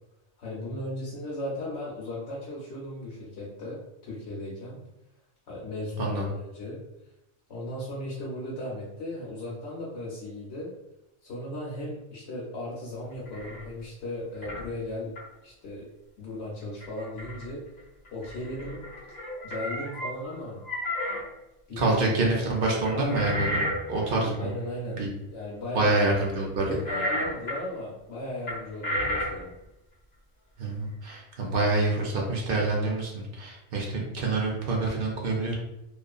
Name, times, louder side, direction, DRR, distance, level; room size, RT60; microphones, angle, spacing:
voice 1, 0.4-4.8 5.5-6.8 7.5-10.7 11.2-15.1 15.4-15.8 16.2-17.6 18.1-18.8 19.4-20.6 21.7-22.5 24.4-25.0 25.3-26.2 26.6-29.5, left 1 dB, 75° left, -6 dB, 1.0 m, -36 dB
sound 1, 13.3-13.7 14.4-14.6 15.1-15.3 16.8-17.4 17.8-17.9 18.0-20.3 20.6-21.2 22.8-24.5 26.8-27.6 28.5-29.5, equal, 40° left, 0.7 m, -32 dB
voice 2, 21.8-23.6 23.9-24.5 25.0-25.1 25.7-26.6 30.6-35.5, right 2 dB, 60° right, -2 dB, 0.6 m, -26 dB
2.5 x 2.4 x 2.3 m, 0.89 s
omnidirectional pair, 1.2 m